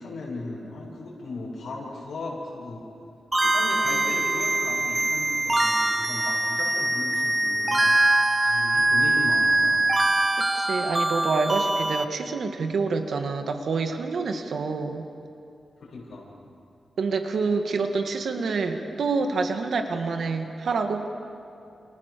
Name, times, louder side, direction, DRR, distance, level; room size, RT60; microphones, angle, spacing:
voice 1, 0.0-2.8 3.3-9.9 15.9-16.4, left 2 dB, 70° left, -4 dB, 7.6 m, -37 dB
sound 1, 3.3-12.0, right 2 dB, 15° right, 1.0 m, -23 dB
voice 2, 10.5-15.0 17.0-21.1, right 4 dB, 70° right, 5 dB, 2.1 m, -27 dB
29.0 x 29.0 x 7.0 m, 2.6 s
wide cardioid pair, 145°, 0 cm